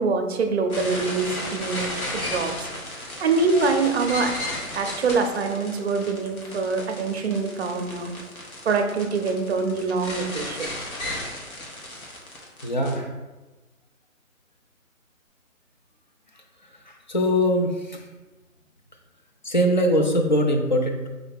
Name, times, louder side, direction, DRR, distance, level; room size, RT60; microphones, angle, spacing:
voice 1, 0.0-2.7 3.2-4.3 4.7-8.1 8.6-10.7, right 4 dB, 50° right, 5 dB, 0.6 m, -24 dB
sound 1, 0.7-12.9, left 1 dB, 90° left, 1.5 m, -34 dB
voice 2, 12.6-13.1 17.1-18.0 19.4-21.1, equal, 35° left, 3 dB, 0.4 m, -22 dB
4.9 x 2.7 x 3.4 m, 1.1 s
hypercardioid pair, 155°, 42 cm